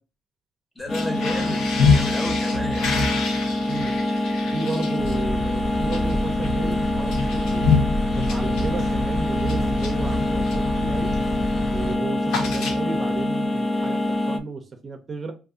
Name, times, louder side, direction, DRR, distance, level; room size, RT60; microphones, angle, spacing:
voice 1, 0.7-2.9, left 2 dB, 15° left, 3 dB, 0.9 m, -33 dB
sound 1, 0.8-10.7 11.1-11.4 11.6-13.2, left 4 dB, 90° left, 0.6 m, -27 dB
sound 2, 0.9-14.4, left 1 dB, 30° left, 0.4 m, -25 dB
voice 2, 4.5-7.7 8.1-11.1 11.7-15.3, right 3 dB, 40° right, 4 dB, 0.5 m, -33 dB
sound 3, 5.0-11.9, left 2 dB, 55° left, 0.8 m, -30 dB
2.5 x 2.4 x 3.6 m, 0.33 s
cardioid pair, 90°, 0 cm